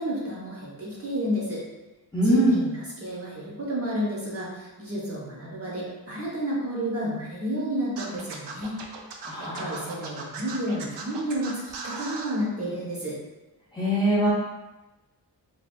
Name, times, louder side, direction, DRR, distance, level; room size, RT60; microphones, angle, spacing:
voice 1, 0.0-1.6 2.2-8.7 9.4-13.2, equal, 35° right, -6 dB, 0.8 m, -31 dB
voice 2, 2.1-2.6 9.3-9.8 13.7-14.3, right 1 dB, 10° left, -9 dB, 0.5 m, -22 dB
Scratching (performance technique), 8.0-12.3, right 4 dB, 90° right, 0.5 m, -37 dB
3.4 x 2.3 x 2.2 m, 1.1 s
wide cardioid pair, 145°, 40 cm